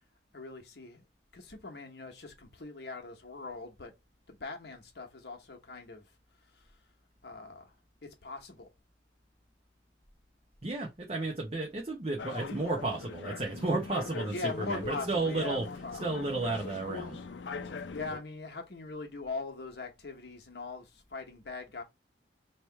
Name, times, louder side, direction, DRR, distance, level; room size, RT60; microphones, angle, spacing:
voice 1, 0.3-1.0 1.3-3.9 4.3-6.0 6.4-6.7 7.2-7.7 8.0-8.7 11.2-11.3 14.3-16.0 17.9-21.8, left 3 dB, 65° left, 1.1 m, -41 dB
voice 2, 10.6-15.6 16.0-17.2, right 2 dB, 35° right, 0.8 m, -33 dB
sound 1, 12.2-18.2, left 4 dB, 85° left, 0.5 m, -41 dB
3.2 x 2.9 x 4.5 m
head